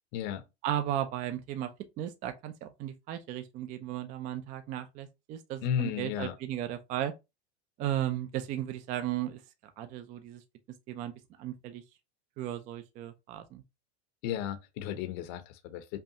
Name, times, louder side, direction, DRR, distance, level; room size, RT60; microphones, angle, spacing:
voice 1, 0.1-0.4 5.6-6.3 14.2-16.0, left 9 dB, 45° left, 0.7 m, -34 dB
voice 2, 0.6-1.7 2.0-7.1 7.8-9.4 9.8-10.4 10.9-11.1 11.4-11.8 12.4-13.6, right 12 dB, 25° right, 0.4 m, -35 dB
5.4 x 2.3 x 2.7 m
supercardioid pair, 140°, 34 cm